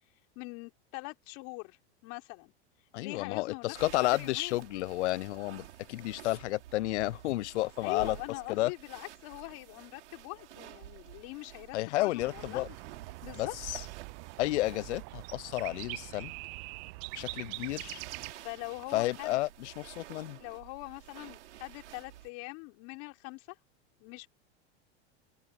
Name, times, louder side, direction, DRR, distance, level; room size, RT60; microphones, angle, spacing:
voice 1, 0.4-1.8 2.0-2.5 3.0-4.7 7.8-12.8 13.2-13.5 18.4-19.4 20.3-23.6 24.0-24.3, left 28 dB, 55° left, 3.8 m, -43 dB
voice 2, 2.9-8.2 8.5-8.7 11.7-12.7 13.3-13.8 14.4-16.3 17.1-18.0 18.9-20.4, left 18 dB, 80° left, 0.5 m, -31 dB
sound 1, 3.7-22.3, right 13 dB, 80° right, 4.6 m, -51 dB
sound 2, 12.2-18.3, right 31 dB, 40° right, 0.4 m, -43 dB
hypercardioid pair, 115°, 34 cm